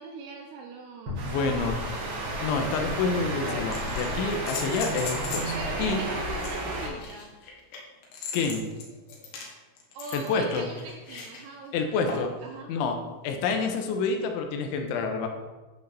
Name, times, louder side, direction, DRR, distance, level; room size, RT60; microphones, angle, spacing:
voice 1, 0.0-2.2 5.5-7.3 9.9-12.7, right 4 dB, 75° right, 2 dB, 2.5 m, -42 dB
sound 1, 1.1-3.5, left 3 dB, 35° right, 2.7 m, -39 dB
sound 2, 1.2-6.9, right 1 dB, 55° right, 3.1 m, -32 dB
voice 2, 1.3-1.8 2.4-6.0 8.3-8.7 10.1-10.7 11.7-12.3 12.7-13.0 13.2-15.3, left 4 dB, 85° left, 5 dB, 3.3 m, -28 dB
sound 3, 3.5-5.6 6.4-11.4 12.1-12.4 14.1-14.2, left 4 dB, 65° left, 3.4 m, -38 dB
12.0 x 8.2 x 4.1 m, 1.2 s
omnidirectional pair, 5.6 m